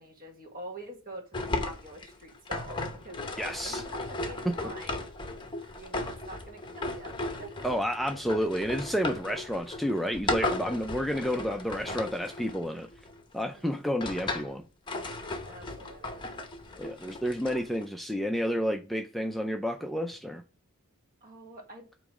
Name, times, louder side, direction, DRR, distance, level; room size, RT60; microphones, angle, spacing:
voice 1, 0.0-5.1 5.7-7.7 13.5-14.0 15.4-16.3 21.2-21.9, right 1 dB, 40° right, 1.7 m, -46 dB
sound 1, 1.3-13.2 13.7-14.5 14.9-17.9, left 2 dB, 20° left, 0.8 m, -36 dB
voice 2, 3.4-3.8 4.5-4.6 7.6-12.9 13.3-14.6 16.8-20.4, equal, ahead, 0.4 m, -30 dB
8.3 x 3.1 x 4.9 m
head